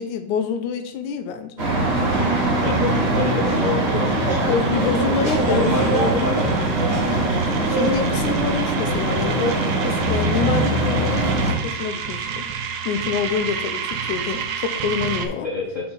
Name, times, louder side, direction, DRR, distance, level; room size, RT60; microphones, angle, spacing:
voice 1, 0.0-1.7 4.5-6.0 7.7-12.5 12.9-15.5, left 6 dB, 85° left, 8 dB, 2.1 m, -26 dB
sound 1, 1.6-11.5, right 2 dB, 30° right, 1.2 m, -21 dB
sound 2, 2.1-15.3, right 7 dB, 80° right, 2.1 m, -32 dB
voice 2, 2.6-6.4 6.9-7.2 15.4-15.9, left 3 dB, 40° left, -7 dB, 1.1 m, -26 dB
5.7 x 4.4 x 5.4 m, 0.88 s
omnidirectional pair, 3.5 m